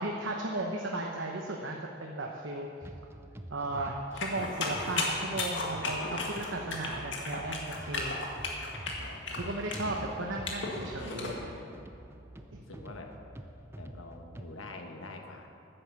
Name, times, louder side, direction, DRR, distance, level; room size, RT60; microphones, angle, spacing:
voice 1, 0.0-2.7 3.5-8.2 9.3-11.5 12.5-12.6, right 2 dB, 70° right, 1 dB, 0.9 m, -35 dB
sound 1, 2.8-14.5, right 1 dB, 10° right, 0.5 m, -47 dB
sound 2, 4.2-11.3, left 3 dB, 65° left, 1.8 m, -35 dB
voice 2, 5.6-6.6 9.0-9.4 11.0-11.9 12.7-13.1 13.8-15.5, left 2 dB, 85° left, 3 dB, 1.4 m, -47 dB
10.0 x 9.8 x 7.1 m, 2.8 s
head